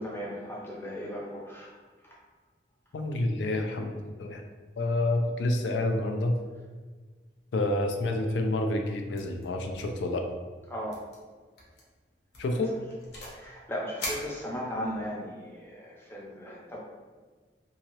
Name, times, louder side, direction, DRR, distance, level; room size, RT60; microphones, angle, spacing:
voice 1, 0.0-1.7 10.7-11.0 13.3-16.8, equal, 15° left, -3 dB, 0.6 m, -36 dB
voice 2, 2.9-4.4 4.8-6.3 7.5-10.3 12.4-12.8, left 2 dB, 85° left, 4 dB, 0.4 m, -28 dB
sound 1, 9.1-9.4 9.7-10.0 10.3-10.4 10.9-11.2 11.6-11.8 12.3-13.5 14.0-15.0, left 1 dB, 70° left, 0.8 m, -40 dB
2.8 x 2.7 x 2.9 m, 1.4 s
head